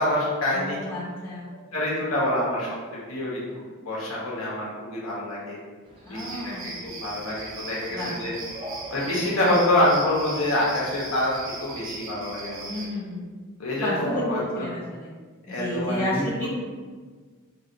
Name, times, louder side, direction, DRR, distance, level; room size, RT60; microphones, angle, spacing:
voice 1, 0.0-0.8 1.7-2.8 3.1-3.4 3.8-5.6 6.0-6.2 6.4-8.3 8.9-11.3 11.6-12.6 13.6-14.7 15.5-16.5, left 1 dB, 75° left, -6 dB, 1.1 m, -26 dB
voice 2, 0.5-1.5 6.0-6.9 7.9-8.1 12.6-13.2 13.8-15.1 15.6-16.5, left 1 dB, 10° left, -9 dB, 0.8 m, -31 dB
sound 1, 5.8-11.9, right 1 dB, 25° right, 0.8 m, -45 dB
sound 2, 6.1-12.9, right 3 dB, 65° right, 0.6 m, -39 dB
4.0 x 2.7 x 2.7 m, 1.5 s
head